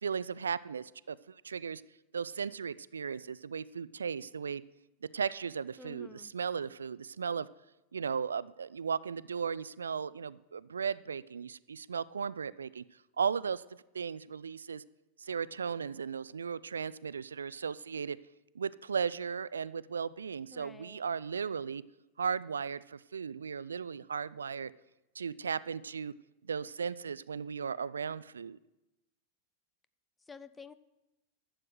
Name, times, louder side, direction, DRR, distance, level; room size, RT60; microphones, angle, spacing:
voice 1, 0.0-1.8 2.1-4.6 5.1-7.5 7.9-12.8 13.2-13.6 13.9-14.8 15.2-18.2 18.6-21.8 22.2-24.7 25.1-26.1 26.4-28.6, right 6 dB, 70° right, 19 dB, 0.3 m, -36 dB
voice 2, 5.8-6.3 20.5-21.0 30.3-30.7, left 4 dB, 15° left, 14 dB, 0.6 m, -50 dB
11.5 x 7.7 x 7.9 m, 0.99 s
figure-of-eight pair, 90°, 0 cm